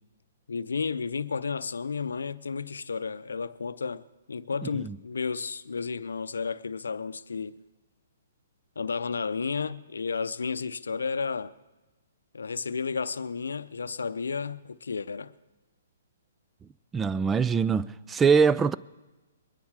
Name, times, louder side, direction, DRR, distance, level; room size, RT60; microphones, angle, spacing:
voice 1, 0.5-7.6 8.8-11.5 12.3-15.3, left 5 dB, 80° left, 0.6 m, -32 dB
voice 2, 16.9-18.7, right 5 dB, 15° right, 0.4 m, -23 dB
22.0 x 10.0 x 4.8 m
hypercardioid pair, 135°, 0 cm